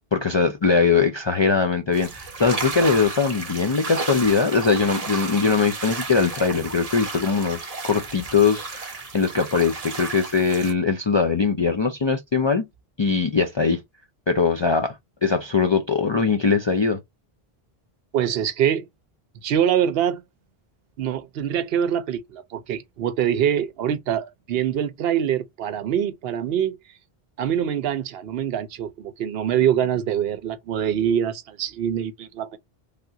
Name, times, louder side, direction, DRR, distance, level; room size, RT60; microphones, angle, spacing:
voice 1, 0.1-12.7 13.0-13.8 14.3-15.0 15.2-17.0, left 5 dB, 50° left, 0.3 m, -21 dB
sound 1, 1.9-10.7, right 3 dB, 40° right, 0.7 m, -33 dB
voice 2, 18.1-18.9 19.4-20.2 21.0-26.8 27.4-32.6, right 9 dB, 75° right, 0.8 m, -24 dB
3.5 x 2.4 x 2.7 m
omnidirectional pair, 1.0 m